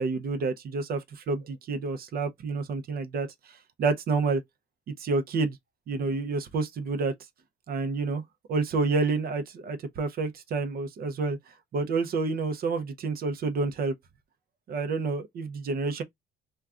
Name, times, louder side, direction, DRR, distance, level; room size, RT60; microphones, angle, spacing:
voice 1, 0.0-4.4 4.9-5.6 5.9-7.1 7.7-8.2 8.5-11.4 11.7-13.9 14.7-16.0, right 4 dB, 50° right, 0.5 m, -29 dB
2.4 x 2.2 x 3.4 m
cardioid pair, 145°, 20 cm